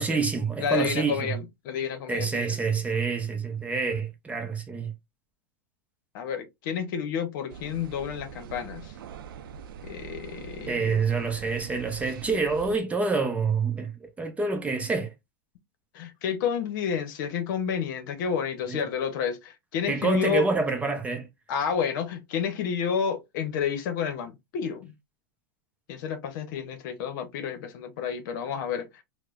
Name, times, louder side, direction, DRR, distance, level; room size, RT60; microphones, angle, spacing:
voice 1, 0.0-1.4 2.1-4.9 10.7-15.1 18.7-18.8 19.9-21.3, right 4 dB, 10° right, 0.6 m, -27 dB
voice 2, 0.6-2.6 6.1-8.9 9.8-11.0 15.9-20.4 21.5-24.9 25.9-29.0, left 7 dB, 60° left, 0.8 m, -30 dB
sound 1, 7.5-12.8, right 8 dB, 80° right, 0.5 m, -43 dB
4.7 x 2.1 x 2.4 m
hypercardioid pair, 120°, 12 cm